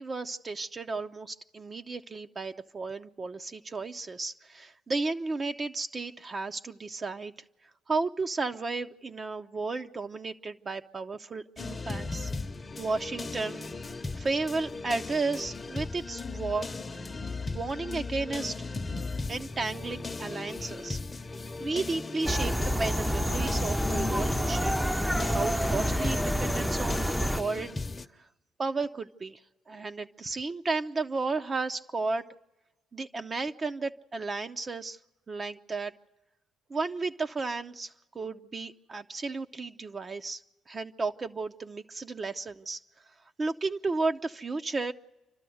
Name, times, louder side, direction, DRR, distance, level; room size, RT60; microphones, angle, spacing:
voice 1, 0.0-7.3 7.9-12.3 12.8-13.7 14.1-16.7 17.5-18.6 19.3-21.0 21.6-24.8 25.3-27.8 28.6-29.4 29.7-32.2 32.9-35.0 35.3-35.9 36.7-40.4 40.7-42.8 43.4-44.9, right 3 dB, 40° right, 7 dB, 0.6 m, -33 dB
sound 1, 11.6-28.1, left 3 dB, 30° left, 0.8 m, -37 dB
sound 2, 22.2-27.4, equal, ahead, 0.6 m, -28 dB
28.5 x 12.5 x 7.8 m, 1.1 s
supercardioid pair, 60°, 0 cm